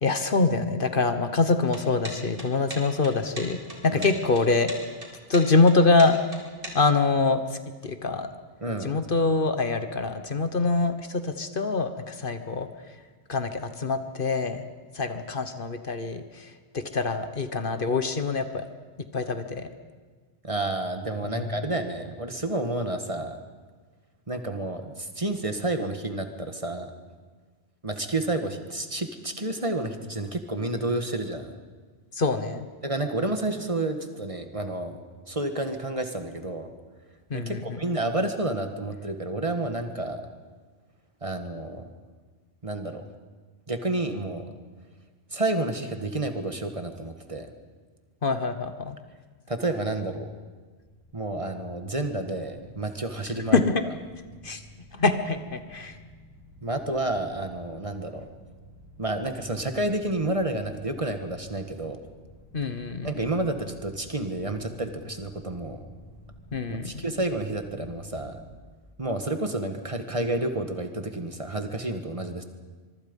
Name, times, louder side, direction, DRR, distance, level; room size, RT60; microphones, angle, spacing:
voice 1, 0.0-4.7 5.3-6.2 6.7-7.6 7.8-8.3 8.8-12.7 13.3-14.6 14.9-18.7 19.1-19.7 21.2-21.6 32.1-32.6 37.3-37.8 48.2-49.0 53.5-53.7 54.4-54.6 54.9-56.0 62.5-63.2 66.5-66.9, left 3 dB, 55° left, 9 dB, 1.4 m, -25 dB
sound 1, 1.7-7.0, right 1 dB, 60° right, 3.9 m, -39 dB
voice 2, 8.6-9.0 20.4-23.4 24.3-26.9 27.8-31.5 32.8-35.0 35.3-36.7 37.3-40.2 41.2-41.9 42.6-43.0 43.7-44.4 45.3-47.5 49.5-50.3 51.1-53.6 56.6-58.3 59.0-62.0 63.0-65.9 66.8-68.4 69.0-72.4, right 2 dB, 35° right, 7 dB, 1.6 m, -30 dB
sound 2, 50.8-68.5, left 1 dB, 30° left, 7.7 m, -51 dB
25.0 x 23.0 x 5.4 m, 1.5 s
omnidirectional pair, 1.1 m